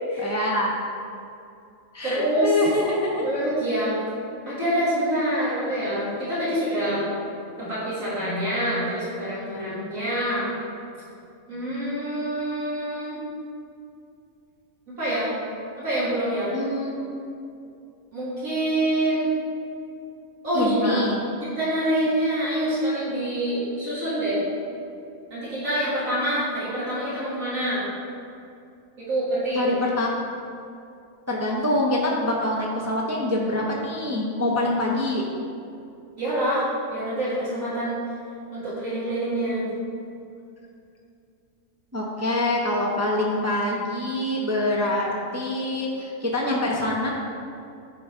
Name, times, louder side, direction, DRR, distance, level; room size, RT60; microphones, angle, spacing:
voice 1, 0.2-0.7 1.9-3.3 16.5-17.1 20.5-21.2 29.5-30.1 31.3-35.2 41.9-47.1, left 1 dB, 20° right, -3 dB, 0.5 m, -25 dB
voice 2, 2.0-2.5 3.2-4.0 4.5-7.1 7.6-10.5 11.5-13.2 14.9-15.3 15.8-16.5 18.1-19.3 20.4-21.0 21.4-24.4 25.3-27.8 29.0-29.7 36.2-36.6 36.9-38.0 38.5-39.7, right 1 dB, 75° right, -11 dB, 2.4 m, -26 dB
9.7 x 3.6 x 4.4 m, 2.5 s
omnidirectional pair, 1.5 m